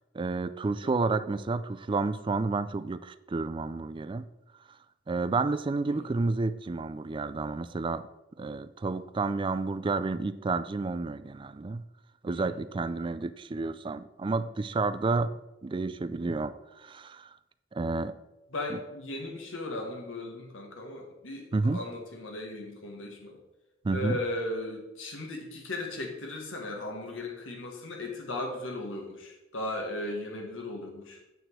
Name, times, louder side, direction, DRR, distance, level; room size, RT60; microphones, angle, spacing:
voice 1, 0.0-4.3 5.1-8.0 8.4-11.8 12.2-15.3 15.6-17.3 17.7-18.2 21.5-21.8 23.8-24.2, right 3 dB, 25° right, 13 dB, 0.3 m, -30 dB
voice 2, 12.3-12.6 18.5-23.4 23.9-31.2, left 2 dB, 80° left, 1 dB, 1.7 m, -37 dB
9.0 x 6.0 x 4.7 m, 1.0 s
head